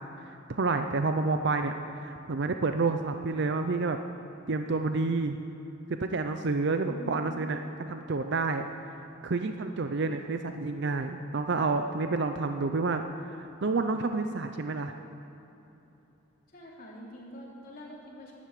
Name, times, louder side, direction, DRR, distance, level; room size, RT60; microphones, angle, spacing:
voice 1, 0.2-4.0 4.5-5.4 6.0-7.6 7.9-8.6 9.2-15.0, right 3 dB, 55° right, 7 dB, 0.6 m, -29 dB
voice 2, 6.8-7.4 16.5-18.3, left 1 dB, 45° left, -4 dB, 3.6 m, -45 dB
12.5 x 11.5 x 8.4 m, 3.0 s
head